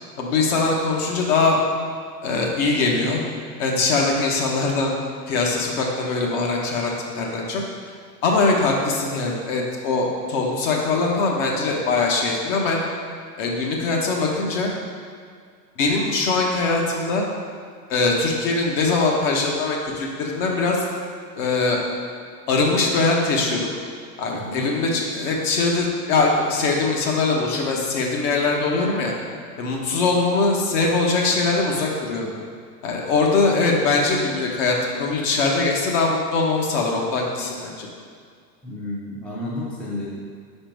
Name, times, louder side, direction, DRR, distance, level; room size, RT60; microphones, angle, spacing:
voice 1, 0.2-1.6 2.2-3.2 3.6-4.9 5.3-7.6 8.2-12.8 13.4-14.7 15.8-17.2 17.9-20.9 21.4-21.8 22.5-23.7 24.2-29.1 29.6-32.3 32.8-37.9, left 3 dB, 50° left, -1 dB, 1.3 m, -22 dB
voice 2, 24.3-24.6 38.6-40.1, left 1 dB, 5° left, -7 dB, 0.6 m, -31 dB
5.1 x 4.3 x 5.2 m, 2.1 s
hypercardioid pair, 130°, 49 cm